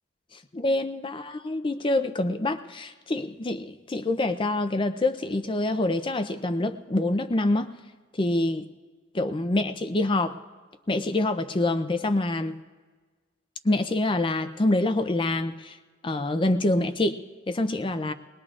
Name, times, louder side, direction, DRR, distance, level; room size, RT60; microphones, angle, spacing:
voice 1, 0.5-7.7 8.1-8.7 9.1-10.4 10.9-12.6 13.6-15.8 16.0-18.1, left 2 dB, 25° left, 9 dB, 0.5 m, -26 dB
21.0 x 19.5 x 2.5 m, 1.4 s
head